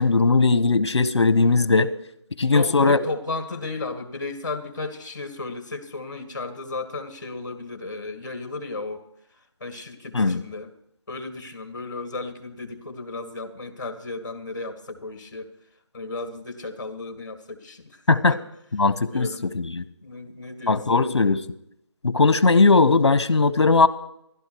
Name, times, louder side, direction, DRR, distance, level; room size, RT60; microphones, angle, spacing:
voice 1, 0.0-1.9 2.4-3.0 10.1-10.4 18.1-18.4 18.7-19.8 20.7-21.4 22.0-23.9, left 3 dB, 65° left, 14 dB, 1.2 m, -19 dB
voice 2, 2.3-9.0 9.6-10.7 11.1-15.5 15.9-18.0 18.3-18.4 19.1-19.6 20.0-21.0, left 3 dB, 40° left, 8 dB, 1.9 m, -34 dB
15.5 x 12.5 x 4.7 m, 0.76 s
figure-of-eight pair, 175°, 15 cm